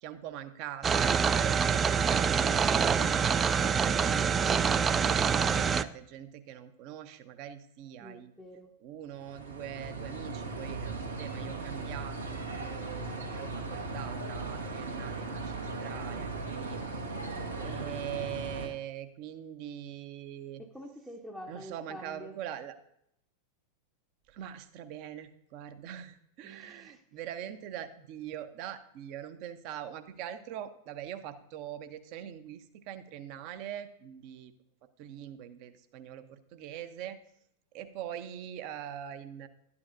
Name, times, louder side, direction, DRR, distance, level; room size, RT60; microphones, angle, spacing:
voice 1, 0.0-4.1 4.9-8.3 8.8-17.0 17.6-20.6 21.5-22.8 24.3-34.5 35.0-37.2 37.7-39.5, right 10 dB, 45° right, 0.8 m, -43 dB
sound 1, 0.8-5.8, right 6 dB, 20° right, 0.3 m, -26 dB
voice 2, 8.0-8.7 17.5-17.9 20.6-22.4 26.4-27.0, equal, ahead, 0.7 m, -47 dB
sound 2, 9.1-18.7, right 3 dB, 80° right, 1.4 m, -38 dB
12.0 x 9.7 x 2.6 m
figure-of-eight pair, 90°, 0 cm